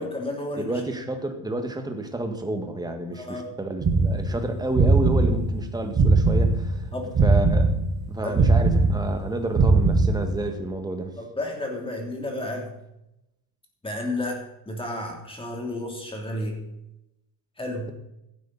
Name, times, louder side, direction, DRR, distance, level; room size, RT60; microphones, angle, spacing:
voice 1, 0.0-0.7 3.1-3.5 6.9-7.1 8.2-8.5 11.2-12.7 13.8-14.4 14.6-16.6 17.6-17.9, left 1 dB, 10° left, 1 dB, 3.2 m, -31 dB
voice 2, 0.6-6.9 7.2-7.7 8.1-11.1, right 2 dB, 10° right, 5 dB, 1.7 m, -30 dB
sound 1, 3.8-6.8 7.1-10.5, right 3 dB, 35° right, 5.0 m, -20 dB
14.5 x 11.0 x 4.2 m, 0.87 s
cardioid pair, 145°, 47 cm